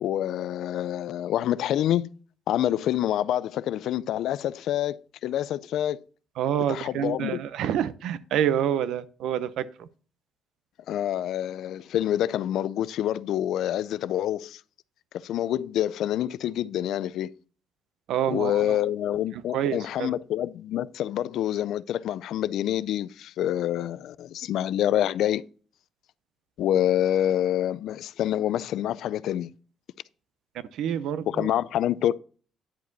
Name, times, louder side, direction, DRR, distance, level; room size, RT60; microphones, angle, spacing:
voice 1, 0.0-2.1 2.5-6.0 6.7-7.4 10.9-14.6 15.1-17.3 18.3-25.4 26.6-29.5 31.3-32.1, left 11 dB, 70° left, 0.3 m, -27 dB
voice 2, 6.4-9.9 18.1-18.8 19.3-20.2 30.7-31.5, right 9 dB, 75° right, 0.6 m, -27 dB
10.0 x 5.0 x 3.9 m
cardioid pair, 175°, 0 cm